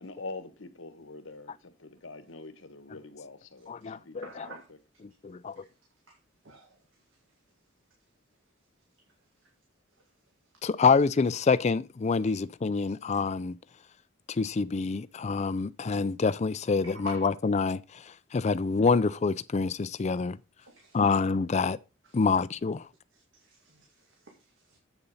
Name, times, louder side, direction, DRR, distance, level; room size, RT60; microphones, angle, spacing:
voice 1, 0.0-4.8, left 3 dB, 80° left, 1.2 m, -45 dB
voice 2, 3.7-4.3 5.2-5.6 10.6-13.6 14.3-20.4 20.9-21.8 22.1-22.9, left 4 dB, 35° left, 0.4 m, -26 dB
voice 3, 4.2-4.7 6.1-6.2 6.4-6.8 10.6-10.7 16.8-17.3 20.6-21.1 23.1-24.8, right 2 dB, 75° right, 2.2 m, -49 dB
8.0 x 7.0 x 5.5 m
head